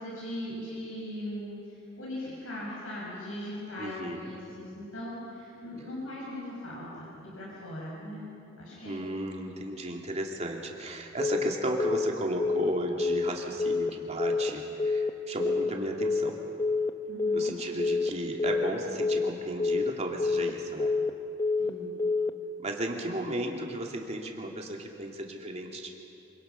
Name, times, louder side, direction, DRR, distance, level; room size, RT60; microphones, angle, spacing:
voice 1, 0.0-1.6 2.0-8.3 8.6-8.9 17.1-17.5 21.6-21.9, left 1 dB, 90° left, -5 dB, 6.7 m, -39 dB
voice 2, 3.8-4.3 8.8-16.4 17.3-20.9 22.6-25.9, right 1 dB, 35° right, 1 dB, 2.6 m, -34 dB
Telephone, 11.2-11.5 11.8-12.1 12.4-12.7 13.0-13.3 13.6-13.9 14.2-14.5 14.8-15.1 15.4-15.7 16.0-16.3 16.6-16.9 17.2-17.5 17.8-18.1 18.4-18.7 19.0-19.3 19.6-19.9 20.2-20.5 20.8-21.1 21.4-21.7 22.0-22.3, left 3 dB, 15° left, 0.7 m, -27 dB
26.5 x 25.5 x 5.9 m, 2.6 s
head